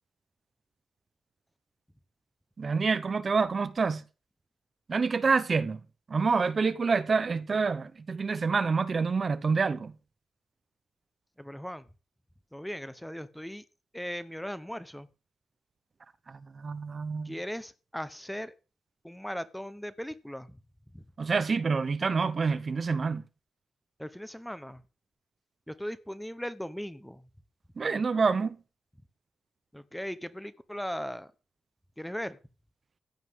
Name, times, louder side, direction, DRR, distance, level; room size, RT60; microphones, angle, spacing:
voice 1, 2.6-4.0 4.9-5.8 6.1-9.9 16.3-17.3 21.2-23.2 27.8-28.6, right 4 dB, 35° right, 0.8 m, -27 dB
voice 2, 11.4-11.8 12.5-13.6 13.9-15.1 17.2-18.5 19.0-20.5 20.9-21.0 24.0-24.8 25.7-27.2 29.7-31.3 32.0-32.4, equal, 5° left, 1.0 m, -38 dB
15.0 x 5.8 x 9.5 m
wide cardioid pair, 135°, 0 cm